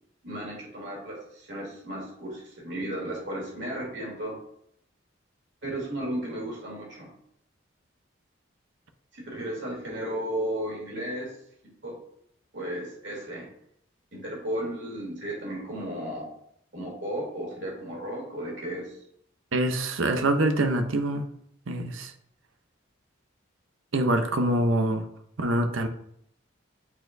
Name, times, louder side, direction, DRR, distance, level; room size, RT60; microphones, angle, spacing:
voice 1, 0.2-4.4 5.6-7.1 9.1-11.3 11.8-12.0 12.5-13.5 14.1-16.3 16.7-19.0, right 1 dB, 60° right, -3 dB, 2.6 m, -34 dB
voice 2, 19.5-21.2 21.7-22.1 23.9-25.0 25.4-25.9, right 1 dB, 85° right, 7 dB, 0.7 m, -25 dB
8.4 x 4.6 x 2.6 m, 0.70 s
head